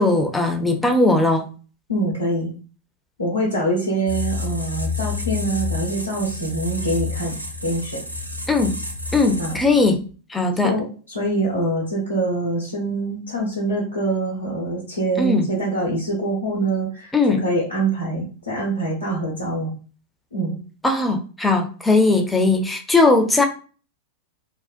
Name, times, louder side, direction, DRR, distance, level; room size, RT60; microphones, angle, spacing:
voice 1, 0.0-1.5 8.5-8.8 9.1-10.8 15.2-15.5 17.1-17.4 20.8-23.5, left 2 dB, 10° left, 0.4 m, -19 dB
voice 2, 1.9-2.5 3.2-7.4 7.6-8.0 9.4-9.6 10.6-17.1 17.4-19.7 20.3-20.6, right 2 dB, 80° left, 0.8 m, -24 dB
sound 1, 4.1-10.1, left 3 dB, 90° right, 0.4 m, -29 dB
2.5 x 2.0 x 2.4 m
figure-of-eight pair, 90°, 0 cm